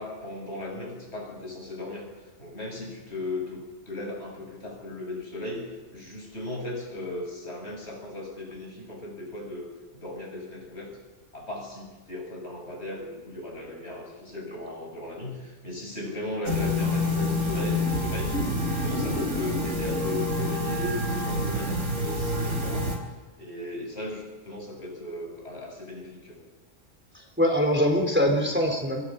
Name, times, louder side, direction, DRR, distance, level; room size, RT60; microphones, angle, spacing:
voice 1, 0.0-3.6 3.9-9.7 9.9-10.9 11.3-18.4 18.7-22.9 23.4-26.4, left 1 dB, 60° left, -1 dB, 8.2 m, -37 dB
sound 1, 16.4-23.0, left 1 dB, 90° right, 4.9 m, -27 dB
voice 2, 27.1-29.0, equal, 10° right, 2 dB, 4.1 m, -23 dB
27.5 x 26.0 x 5.5 m, 1.2 s
omnidirectional pair, 1.3 m